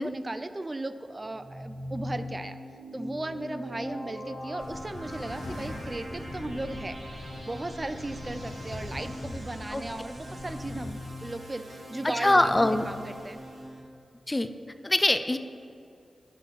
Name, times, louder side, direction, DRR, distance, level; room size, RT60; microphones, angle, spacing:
voice 1, 0.0-2.6 2.9-12.5 12.9-13.4, right 2 dB, 35° right, 11 dB, 0.4 m, -36 dB
sound 1, 1.3-13.8, left 1 dB, 85° right, 1.7 m, -41 dB
sound 2, 4.6-10.9, left 1 dB, 75° left, 0.9 m, -42 dB
voice 2, 12.0-12.9 14.3-14.5 14.8-15.4, left 1 dB, 25° left, 10 dB, 0.4 m, -23 dB
6.1 x 5.6 x 5.9 m, 2.3 s
cardioid pair, 40°, 0 cm